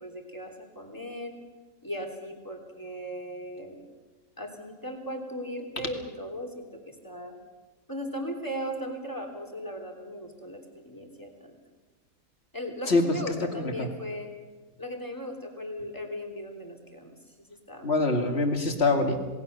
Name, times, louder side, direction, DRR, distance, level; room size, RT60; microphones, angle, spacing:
voice 1, 0.0-1.3 1.8-3.8 4.4-7.3 7.9-11.6 12.5-14.3 14.8-17.3 17.7-18.2, equal, 10° left, 3 dB, 3.3 m, -37 dB
voice 2, 12.9-13.2 13.8-13.9 17.8-19.2, left 3 dB, 40° left, 4 dB, 2.7 m, -24 dB
27.5 x 19.0 x 6.9 m, 1.3 s
omnidirectional pair, 1.7 m